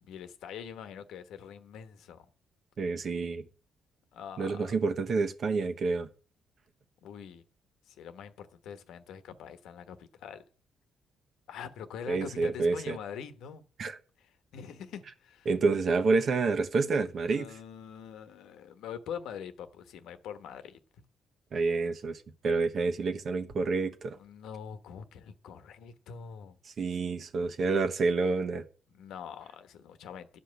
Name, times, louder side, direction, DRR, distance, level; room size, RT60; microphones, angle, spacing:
voice 1, 0.0-2.3 4.1-4.7 7.0-7.4 7.9-10.4 11.5-13.6 14.2-15.5 17.3-20.8 24.1-26.6 28.9-30.4, left 8 dB, 85° left, 1.2 m, -44 dB
voice 2, 2.8-3.4 4.4-6.1 12.1-13.0 13.8-14.0 15.5-17.5 21.5-24.2 26.6-28.6, right 4 dB, 55° right, 1.2 m, -28 dB
11.5 x 5.5 x 8.2 m
cardioid pair, 90°, 0 cm